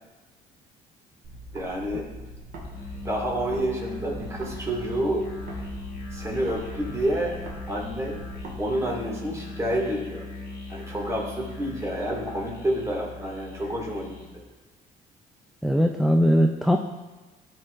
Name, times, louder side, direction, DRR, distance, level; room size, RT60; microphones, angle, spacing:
sound 1, 1.2-3.7 4.0-8.6, right 1 dB, 75° right, 2.0 m, -42 dB
voice 1, 1.5-2.1 3.0-5.3 6.1-7.4 7.7-8.2 8.6-10.3 10.7-14.2, right 1 dB, 15° right, -2 dB, 2.0 m, -29 dB
Musical instrument, 2.6-14.4, left 2 dB, 80° left, 1.6 m, -39 dB
voice 2, 15.6-16.8, equal, ahead, 3 dB, 0.3 m, -20 dB
13.0 x 4.6 x 2.5 m, 1.2 s
cardioid pair, 110°, 17 cm